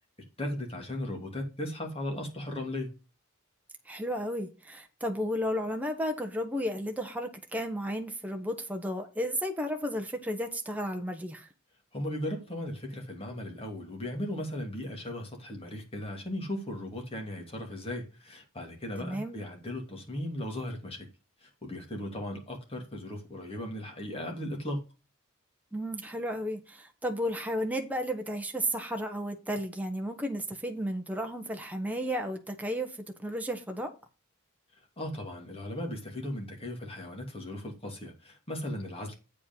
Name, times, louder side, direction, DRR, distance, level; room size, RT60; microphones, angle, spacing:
voice 1, 0.4-2.9 11.9-21.1 21.4-24.8 35.0-39.1, left 1 dB, 25° left, 2.8 m, -37 dB
voice 2, 3.9-11.5 19.0-19.4 25.7-32.9 33.2-33.9, equal, 5° right, 1.1 m, -33 dB
8.4 x 5.3 x 5.4 m
head